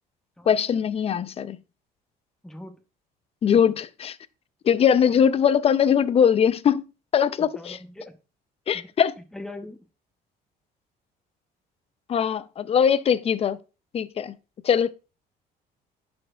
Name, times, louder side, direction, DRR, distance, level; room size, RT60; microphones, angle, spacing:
voice 1, 0.5-1.6 3.4-4.2 4.6-6.8 7.1-7.8 8.7-9.1 12.1-13.6 13.9-14.3 14.6-14.9, left 8 dB, 35° left, 0.4 m, -21 dB
voice 2, 2.4-2.8 7.4-8.2 8.7-8.9 9.3-9.8, left 1 dB, 5° left, 0.8 m, -40 dB
11.0 x 4.4 x 2.2 m
cardioid pair, 110°, 17 cm